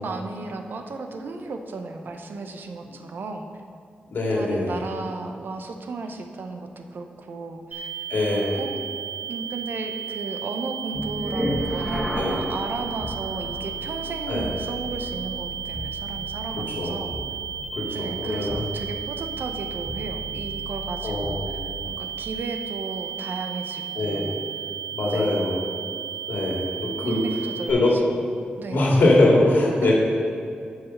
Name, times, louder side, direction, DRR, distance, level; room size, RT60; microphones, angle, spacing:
voice 1, 0.0-3.5 4.3-7.9 8.2-8.7 9.3-17.1 17.9-21.4 21.8-24.4 25.1-25.4 26.9-28.0 28.6-28.9 29.8-29.9, right 3 dB, 70° right, 5 dB, 0.8 m, -34 dB
voice 2, 4.1-4.8 8.1-8.6 12.2-12.4 14.3-14.5 16.8-16.9 17.7-18.6 21.0-21.5 24.0-24.3 24.9-25.6 26.3-27.2 27.7-28.0 28.7-29.9, left 2 dB, 80° left, -4 dB, 2.2 m, -22 dB
sound 1, 7.7-27.7, right 9 dB, 50° right, 2.1 m, -34 dB
sound 2, 10.9-22.1, left 1 dB, 10° left, 1.3 m, -34 dB
8.3 x 4.9 x 6.6 m, 2.4 s
cardioid pair, 60°, 4 cm